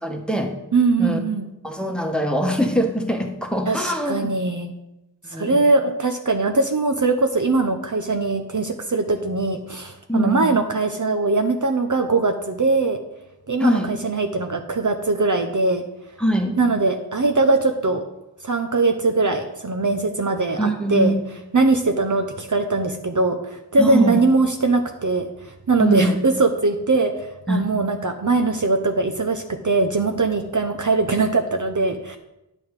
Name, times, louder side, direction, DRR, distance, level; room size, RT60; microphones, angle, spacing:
voice 1, 0.0-0.5 1.0-1.2 1.6-4.2 5.3-5.6 10.1-10.5 13.6-13.9 16.2-16.5 20.6-21.1 23.8-24.2 25.8-26.2 27.5-27.7, equal, ahead, 3 dB, 1.3 m, -22 dB
voice 2, 0.7-1.5 3.7-4.7 5.3-13.0 13.5-15.8 16.6-18.0 18.4-21.2 21.5-32.2, right 3 dB, 45° right, 5 dB, 0.7 m, -21 dB
9.6 x 7.0 x 4.7 m, 0.91 s
wide cardioid pair, 65°, 42 cm